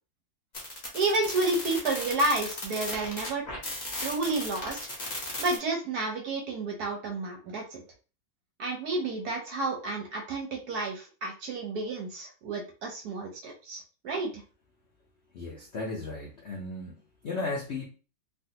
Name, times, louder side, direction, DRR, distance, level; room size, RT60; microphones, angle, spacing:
sound 1, 0.5-5.6, left 1 dB, 35° left, 0.7 m, -36 dB
voice 1, 0.9-3.4 4.0-4.8 5.4-7.8 8.6-14.4, right 2 dB, 65° right, 2 dB, 1.0 m, -30 dB
voice 2, 15.3-17.0 17.2-17.8, left 3 dB, 75° left, -3 dB, 0.6 m, -35 dB
3.3 x 2.5 x 2.7 m, 0.35 s
omnidirectional pair, 2.1 m